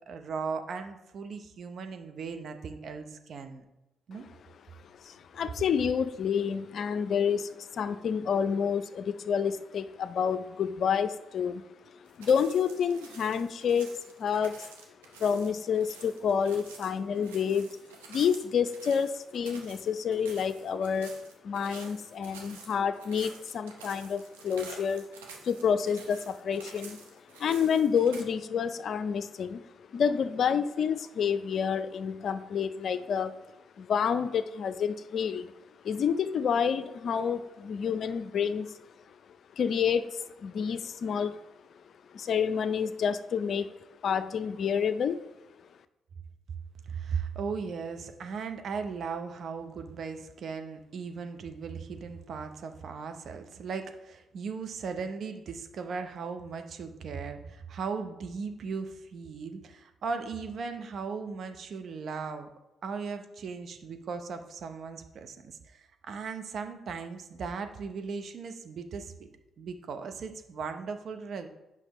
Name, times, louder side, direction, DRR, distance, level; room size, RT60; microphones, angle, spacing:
voice 1, 0.1-3.6 4.1-4.3 46.8-62.5 62.8-69.1 69.6-71.5, right 5 dB, 60° right, 6 dB, 0.7 m, -37 dB
voice 2, 4.8-11.6 11.9-14.6 15.2-17.8 18.1-21.2 21.4-25.1 25.4-27.0 27.3-33.4 33.8-35.5 35.8-38.8 39.6-41.4 42.1-43.7 44.0-45.2, left 7 dB, 60° left, 13 dB, 0.4 m, -29 dB
sound 1, 12.1-28.2, right 5 dB, 90° right, 0.8 m, -49 dB
8.0 x 5.9 x 3.0 m, 0.97 s
hypercardioid pair, 45°, 0 cm